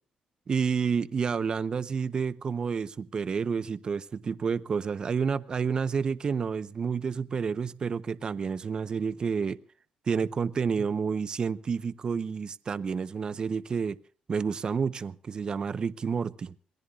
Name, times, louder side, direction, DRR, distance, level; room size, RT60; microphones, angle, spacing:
voice 1, 0.5-9.6 10.1-14.0 14.3-16.5, right 6 dB, 35° right, 13 dB, 0.7 m, -29 dB
26.5 x 19.0 x 2.4 m, 0.41 s
cardioid pair, 125°, 2 cm